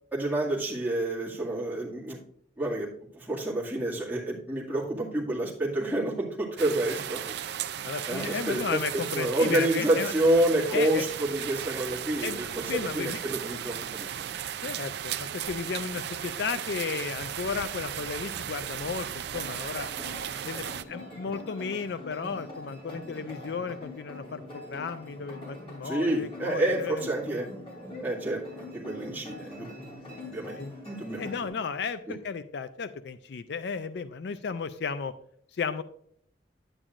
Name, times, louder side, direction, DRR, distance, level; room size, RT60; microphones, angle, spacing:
voice 1, 0.1-2.2 2.6-2.9 3.1-7.2 8.1-14.3 25.8-27.5 28.0-29.7 30.3-30.6 30.8-31.3 32.1-32.2, right 1 dB, 10° right, -6 dB, 2.0 m, -28 dB
sound 1, 6.6-20.8, right 9 dB, 55° right, 0.4 m, -36 dB
voice 2, 7.8-10.1 10.7-11.0 12.2-13.2 14.6-19.9 20.4-27.1 30.6-30.7 31.2-35.1 35.5-35.8, left 5 dB, 60° left, 12 dB, 0.4 m, -34 dB
sound 2, 19.3-31.5, left 1 dB, 30° left, 2.8 m, -44 dB
9.9 x 8.9 x 2.5 m, 0.64 s
head